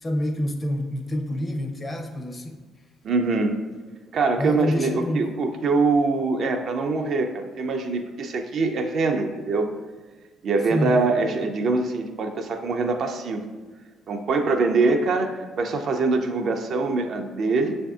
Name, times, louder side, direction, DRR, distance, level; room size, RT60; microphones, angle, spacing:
voice 1, 0.0-2.6 4.4-5.3 10.7-11.0, left 1 dB, 30° left, 4 dB, 0.6 m, -27 dB
voice 2, 3.0-3.5 4.1-9.7 10.4-13.4 14.1-17.8, right 3 dB, 60° right, 5 dB, 0.4 m, -23 dB
6.5 x 2.6 x 2.3 m, 1.4 s
supercardioid pair, 70°, 0 cm